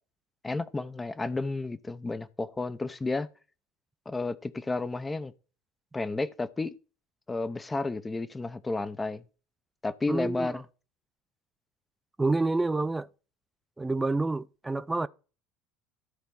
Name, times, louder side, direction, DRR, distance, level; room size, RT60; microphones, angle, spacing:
voice 1, 0.4-3.3 4.1-5.3 5.9-6.7 7.3-9.2 9.8-10.6, left 3 dB, 15° left, 0.8 m, -32 dB
voice 2, 10.1-10.5 12.2-13.1 13.8-15.1, right 3 dB, 10° right, 0.5 m, -28 dB
13.0 x 4.4 x 5.5 m
figure-of-eight pair, 70°, 0 cm